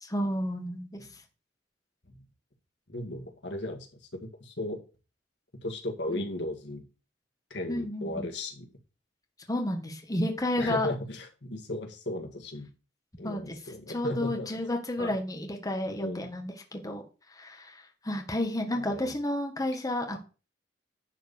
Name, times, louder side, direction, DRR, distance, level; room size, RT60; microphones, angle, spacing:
voice 1, 0.0-1.0 6.1-6.2 7.7-8.3 9.5-10.9 13.2-13.4 13.9-17.0 17.3-20.2, left 1 dB, 20° left, 3 dB, 1.6 m, -31 dB
voice 2, 2.9-3.9 4.1-4.8 5.6-6.8 7.5-8.7 10.6-12.7 13.2-14.5 15.0-15.1 15.9-16.3 18.7-19.1, left 1 dB, 80° left, 3 dB, 2.2 m, -36 dB
11.0 x 4.4 x 7.1 m, 0.33 s
head